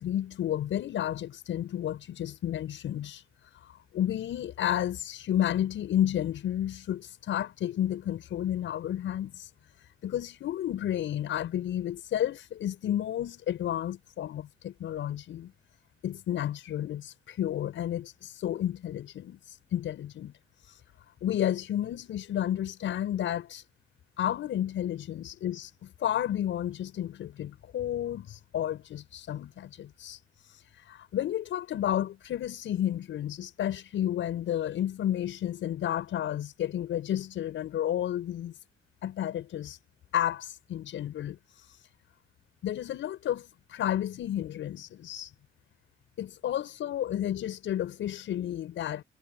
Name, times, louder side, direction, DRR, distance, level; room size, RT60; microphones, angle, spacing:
voice 1, 0.0-3.2 3.5-9.5 10.0-15.5 16.0-20.3 20.6-20.8 21.2-23.6 24.2-30.2 30.8-38.5 39.0-39.8 40.1-41.7 42.6-45.3 46.2-49.0, left 11 dB, 75° left, 7.3 m, -31 dB
cardioid pair, 90°, 20 cm